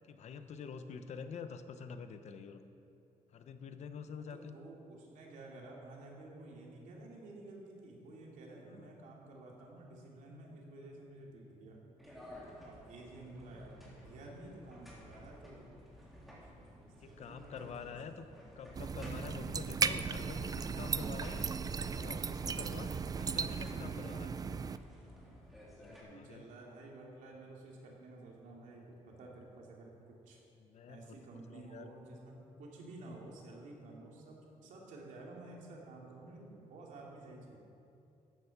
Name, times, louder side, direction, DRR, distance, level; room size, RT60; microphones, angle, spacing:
voice 1, 0.1-2.6 3.3-4.6 8.7-8.9 17.0-18.3 18.6-21.5 21.9-24.3 25.8-26.4 30.6-31.2 31.5-31.9, left 6 dB, 60° left, 9 dB, 0.9 m, -47 dB
voice 2, 4.3-12.1 12.6-15.8 16.4-18.4 26.1-30.4 30.9-37.6, right 2 dB, 80° right, -2 dB, 2.9 m, -52 dB
sound 1, 12.0-26.0, equal, ahead, 3.5 m, -55 dB
sound 2, 18.7-24.8, right 5 dB, 30° right, 0.4 m, -36 dB
14.0 x 10.5 x 5.9 m, 2.8 s
cardioid pair, 120°, 13 cm